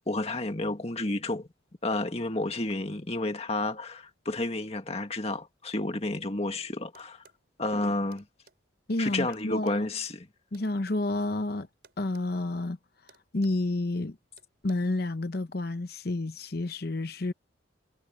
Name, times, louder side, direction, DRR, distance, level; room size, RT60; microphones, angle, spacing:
voice 1, 0.1-1.5 1.8-7.2 7.6-8.2 9.0-10.3, left 2 dB, 35° left, 1.8 m, -31 dB
sound 1, 6.9-7.4 8.1-8.6 9.3-11.0 11.8-12.3 12.6-12.7 13.1-13.7 14.4-14.7, right 5 dB, 60° right, 6.1 m, -59 dB
voice 2, 8.9-9.9 10.5-11.7 12.0-12.8 13.3-14.2 14.6-17.3, left 2 dB, 55° left, 0.9 m, -30 dB
head